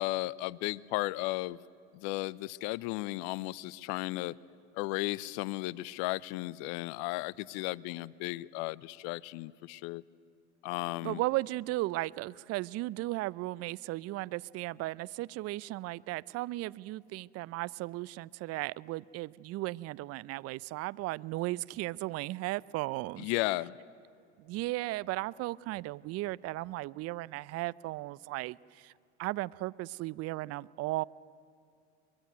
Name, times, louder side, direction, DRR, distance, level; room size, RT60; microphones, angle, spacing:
voice 1, 0.0-1.6 1.9-4.3 4.7-10.0 10.6-11.2 23.2-23.8, left 20 dB, 60° left, 22 dB, 0.7 m, -35 dB
voice 2, 11.0-23.3 24.4-28.9 29.2-31.0, right 19 dB, 45° right, 22 dB, 0.6 m, -36 dB
23.0 x 22.5 x 9.3 m, 2.5 s
hypercardioid pair, 85°, 35 cm